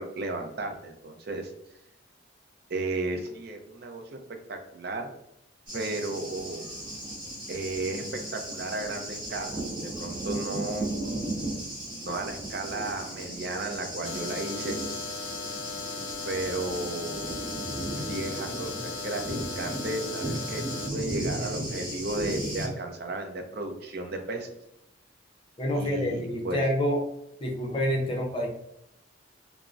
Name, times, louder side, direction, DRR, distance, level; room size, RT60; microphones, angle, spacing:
voice 1, 0.0-1.5 2.7-4.2 4.5-5.1 5.7-6.7 7.5-10.9 12.0-14.8 16.3-17.3 18.0-24.6 25.7-26.6, right 2 dB, 50° right, 5 dB, 0.5 m, -34 dB
Thunder, 5.7-22.7, right 1 dB, 25° right, 1.1 m, -35 dB
sound 1, 14.0-20.9, left 5 dB, 80° left, 0.3 m, -38 dB
voice 2, 25.6-27.0 27.4-28.5, equal, 25° left, 0 dB, 0.6 m, -27 dB
3.6 x 2.0 x 2.4 m, 0.77 s
head